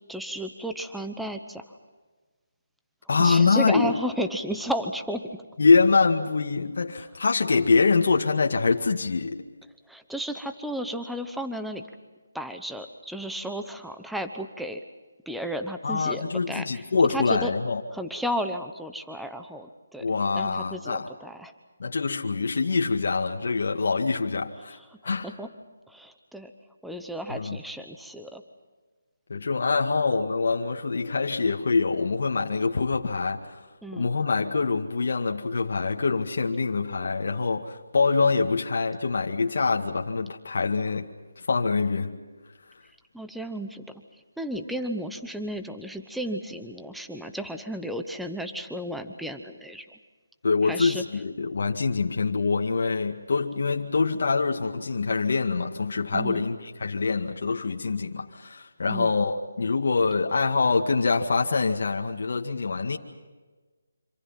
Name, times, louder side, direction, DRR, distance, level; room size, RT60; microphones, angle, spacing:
voice 1, 0.1-1.6 3.2-5.3 9.9-11.8 12.3-14.8 15.3-16.8 17.1-17.5 17.9-21.5 25.2-25.5 25.9-26.5 26.8-28.4 33.8-34.1 43.1-43.8 44.1-49.9 50.6-51.0 56.1-56.4 58.9-59.2, equal, ahead, 1.0 m, -33 dB
voice 2, 3.1-4.0 5.6-9.4 15.8-17.8 20.0-21.1 21.8-24.8 25.0-25.3 27.3-27.6 29.3-33.6 33.9-41.1 41.4-42.2 50.4-63.0, left 4 dB, 55° left, 2.0 m, -24 dB
27.0 x 26.0 x 5.9 m
hypercardioid pair, 170°, 0 cm